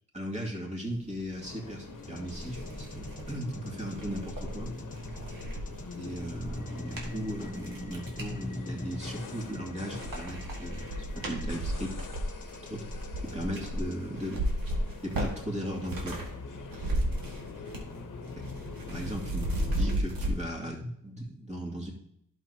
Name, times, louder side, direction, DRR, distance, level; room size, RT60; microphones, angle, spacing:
voice 1, 0.1-4.7 6.0-12.0 12.7-12.9 13.2-14.5 15.0-16.2 18.3-18.5 18.9-21.9, equal, 20° right, -2 dB, 2.4 m, -37 dB
sound 1, 1.4-20.0, left 4 dB, 65° left, 1.0 m, -45 dB
sound 2, 1.7-1.8 2.2-8.4 8.9-9.5 9.8-16.3 16.6-18.0 18.2-20.3, right 1 dB, 85° right, 2.0 m, -35 dB
sound 3, 2.0-13.9, left 1 dB, 25° left, 1.1 m, -42 dB
11.5 x 6.6 x 2.9 m, 0.73 s
wide cardioid pair, 75°, 34 cm